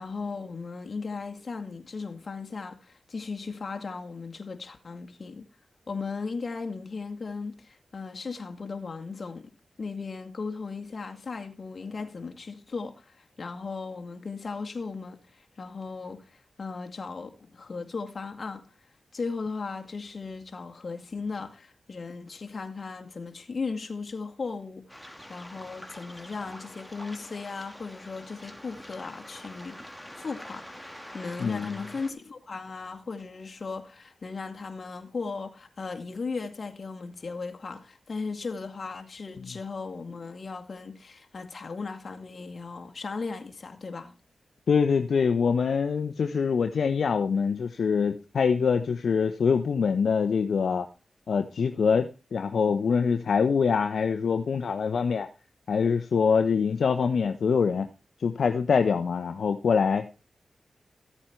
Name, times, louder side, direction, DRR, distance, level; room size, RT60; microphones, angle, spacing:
voice 1, 0.0-5.5 5.9-9.5 9.8-18.7 19.1-24.9 25.3-44.1, left 4 dB, 55° left, 2.2 m, -37 dB
Waves surf, 24.9-32.1, equal, 5° left, 2.9 m, -45 dB
voice 2, 31.4-31.7 44.7-50.9 51.3-55.3 55.7-57.9 58.2-60.1, left 6 dB, 75° left, 1.0 m, -24 dB
15.0 x 8.7 x 4.6 m
cardioid pair, 45°, 0 cm